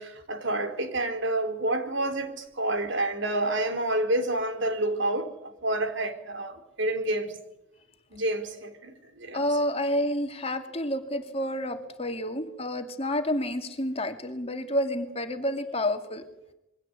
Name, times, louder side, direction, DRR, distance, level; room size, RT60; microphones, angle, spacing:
voice 1, 0.0-7.4 8.1-9.6, right 1 dB, 60° right, 4.1 m, -29 dB
voice 2, 9.3-16.2, left 1 dB, 30° left, 2.4 m, -29 dB
27.5 x 23.0 x 8.4 m
head